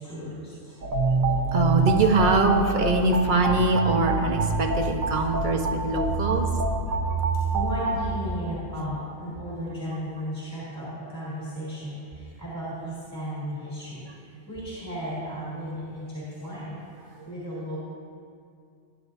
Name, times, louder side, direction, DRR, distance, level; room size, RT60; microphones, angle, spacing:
voice 1, 0.0-1.2 5.4-5.5 6.4-14.1 14.5-17.8, equal, 15° left, -10 dB, 3.6 m, -35 dB
sound 1, 0.8-8.1, right 3 dB, 80° right, 1.5 m, -26 dB
voice 2, 1.3-6.5 6.9-7.3, right 3 dB, 40° right, 3 dB, 1.1 m, -23 dB
19.5 x 10.5 x 2.7 m, 2.3 s
omnidirectional pair, 1.4 m